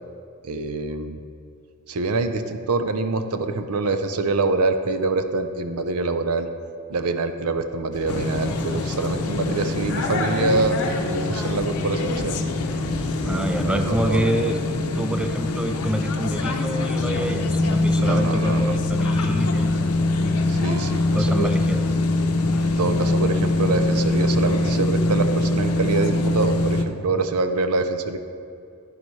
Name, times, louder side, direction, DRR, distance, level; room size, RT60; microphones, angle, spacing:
voice 1, 0.4-1.2 1.9-6.5 6.9-12.4 13.2-14.5 17.9-18.7 20.5-21.5 22.6-28.2, right 3 dB, 80° right, 9 dB, 0.6 m, -25 dB
sound 1, 7.9-14.2, left 2 dB, 55° left, 1.0 m, -33 dB
sound 2, 8.1-26.8, left 2 dB, 80° left, 0.7 m, -23 dB
voice 2, 13.3-14.6 15.0-19.9 21.1-21.8, right 1 dB, 5° right, 6 dB, 0.3 m, -27 dB
10.5 x 9.7 x 3.2 m, 2.5 s
head